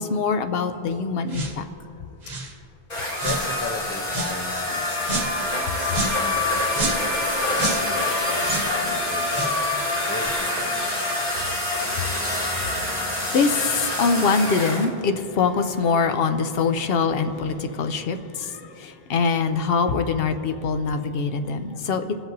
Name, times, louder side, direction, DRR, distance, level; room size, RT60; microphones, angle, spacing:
voice 1, 0.0-1.6 12.7-22.0, left 5 dB, 75° left, 9 dB, 0.8 m, -24 dB
sound 1, 1.3-1.6 2.2-2.5 3.2-3.5 4.1-4.4 5.0-5.3 5.9-6.2 6.7-7.1 7.5-7.9 8.4-8.7 9.3-9.6 10.2-10.4, right 3 dB, 45° right, 1.0 m, -29 dB
sound 2, 2.9-14.9, left 2 dB, 60° left, 1.9 m, -26 dB
voice 2, 3.2-5.3 5.7-11.0, left 3 dB, 20° left, 7 dB, 0.4 m, -36 dB
20.0 x 8.0 x 2.6 m, 2.8 s
omnidirectional pair, 1.0 m